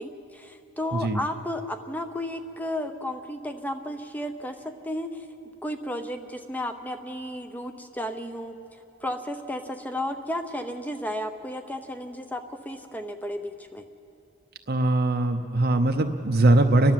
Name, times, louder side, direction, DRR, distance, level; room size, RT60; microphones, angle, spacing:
voice 1, 0.0-5.3 5.6-8.5 9.0-13.8, left 1 dB, 5° left, 7 dB, 0.8 m, -33 dB
voice 2, 14.7-16.9, right 2 dB, 45° right, 4 dB, 0.7 m, -21 dB
30.0 x 12.0 x 7.5 m, 2.9 s
head